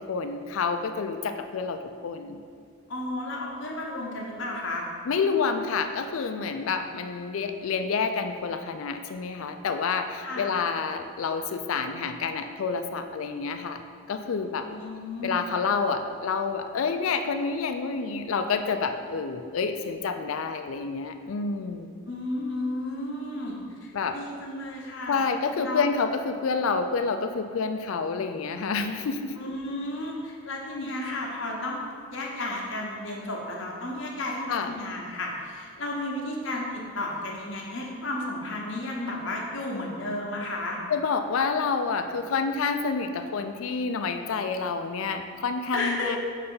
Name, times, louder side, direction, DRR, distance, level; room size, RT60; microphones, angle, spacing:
voice 1, 0.0-2.4 5.1-13.8 14.1-14.7 15.2-21.9 23.9-24.2 25.1-29.4 30.7-30.9 34.5-34.7 40.9-46.2, left 5 dB, 70° left, 8 dB, 0.4 m, -28 dB
voice 2, 2.9-4.9 10.2-10.5 14.6-15.4 22.1-25.2 25.6-25.8 29.4-31.8 32.1-40.8 45.7-46.2, left 1 dB, 55° left, -2 dB, 0.9 m, -33 dB
5.5 x 3.3 x 5.5 m, 2.2 s
head